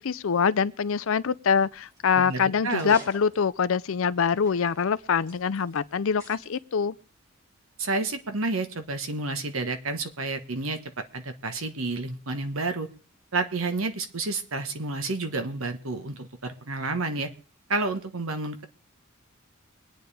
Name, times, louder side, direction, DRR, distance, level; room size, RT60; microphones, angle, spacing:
voice 1, 0.0-7.0, left 6 dB, 70° left, 0.5 m, -24 dB
sound 1, 1.5-6.6, left 1 dB, 15° right, 3.0 m, -51 dB
voice 2, 2.1-3.0 7.8-10.8 11.1-12.9 13.3-17.3 17.7-18.6, right 3 dB, 75° right, 1.3 m, -30 dB
24.0 x 9.2 x 3.5 m
head